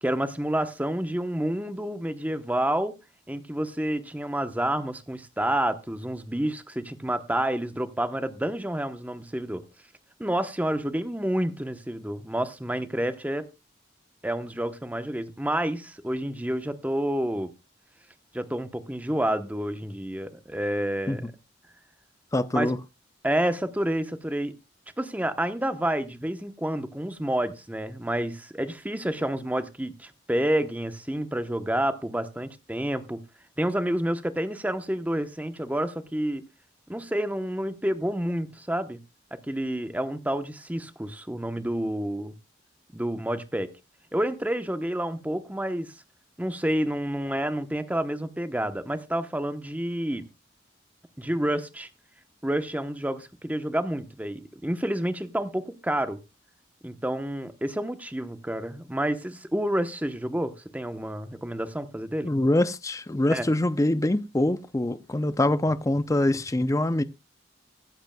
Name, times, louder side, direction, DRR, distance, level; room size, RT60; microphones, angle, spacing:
voice 1, 0.0-3.0 3.3-9.6 10.2-13.5 14.2-17.5 18.3-21.2 22.5-22.7 23.2-24.6 25.0-33.2 33.6-36.4 36.9-39.0 39.5-42.3 42.9-43.7 44.1-45.9 46.4-50.3 51.2-51.9 52.4-56.2 56.8-62.3 63.3-63.5, right 1 dB, 10° right, 0.9 m, -29 dB
voice 2, 22.3-22.8 62.2-67.0, left 1 dB, 15° left, 0.5 m, -24 dB
24.0 x 8.0 x 2.2 m
head